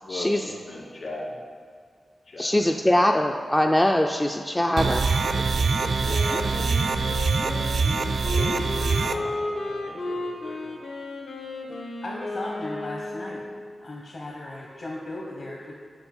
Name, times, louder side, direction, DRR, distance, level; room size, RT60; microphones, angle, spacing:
voice 1, 0.0-1.4 2.2-2.7 5.6-6.8 8.2-10.8, left 1 dB, 55° left, -4 dB, 2.1 m, -39 dB
voice 2, 2.4-5.0, left 1 dB, 10° left, 3 dB, 0.3 m, -22 dB
sound 1, 4.8-9.1, right 4 dB, 60° right, 0.4 m, -24 dB
Wind instrument woodwind instrument, 6.0-13.8, left 2 dB, 75° left, 1.0 m, -33 dB
voice 3, 12.0-13.4 13.8-15.7, left 2 dB, 40° left, -3 dB, 0.9 m, -36 dB
7.0 x 6.2 x 5.4 m, 2.2 s
wide cardioid pair, 145°, 0 cm